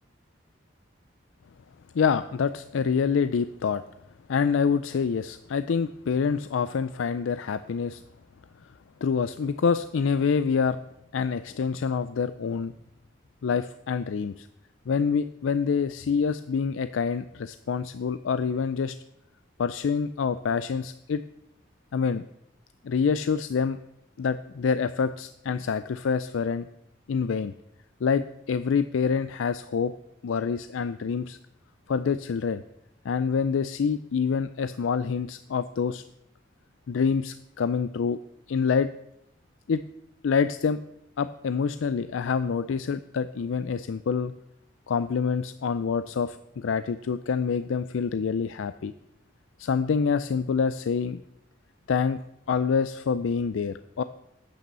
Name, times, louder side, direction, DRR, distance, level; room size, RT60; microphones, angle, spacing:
voice 1, 1.9-3.8 4.3-8.0 9.0-10.8 11.1-12.7 13.4-14.5 14.9-18.9 19.6-21.2 21.9-22.2 22.8-23.8 24.2-26.7 27.1-27.5 28.0-29.9 30.2-31.4 31.9-32.6 33.0-36.0 36.9-38.2 38.5-38.9 39.7-39.8 40.2-40.8 41.2-44.3 44.9-48.9 49.6-51.2 51.9-52.2 52.5-54.0, left 6 dB, 90° left, 12 dB, 0.4 m, -26 dB
9.2 x 8.6 x 6.7 m, 0.80 s
head